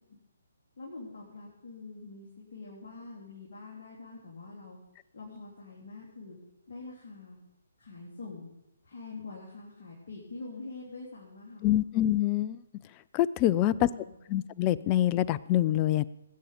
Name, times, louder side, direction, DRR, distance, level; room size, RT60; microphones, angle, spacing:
voice 1, 0.8-4.8 5.1-6.4 6.7-7.4 7.8-8.5 8.8-11.7 13.4-14.1, left 3 dB, 45° left, -6 dB, 3.5 m, -45 dB
voice 2, 11.6-12.6 13.1-13.9 14.3-16.1, left 13 dB, 25° left, 19 dB, 0.4 m, -25 dB
19.5 x 8.4 x 5.2 m, 0.94 s
figure-of-eight pair, 135°, 0 cm